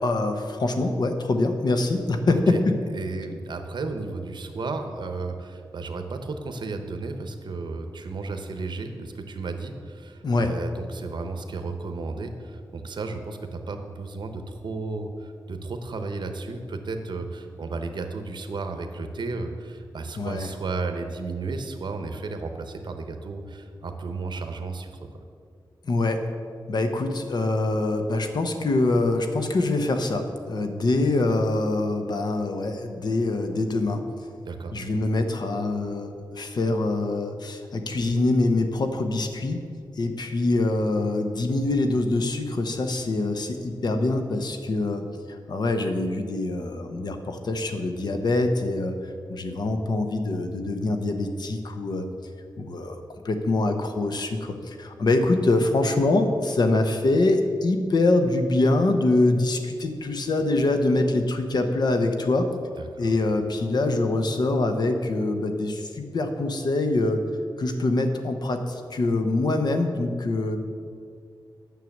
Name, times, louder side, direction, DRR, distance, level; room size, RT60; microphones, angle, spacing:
voice 1, 0.0-2.8 10.2-10.5 20.2-20.5 25.8-26.2 26.7-34.0 34.7-39.6 40.0-45.0 45.5-48.9 49.3-52.1 52.6-53.0 53.2-62.5 63.0-67.2 67.6-70.6, left 2 dB, 60° left, 6 dB, 1.0 m, -24 dB
voice 2, 2.9-24.9 34.4-34.7 62.8-63.1, right 3 dB, 70° right, 6 dB, 1.0 m, -33 dB
9.4 x 6.7 x 7.3 m, 2.2 s
wide cardioid pair, 135°, 8 cm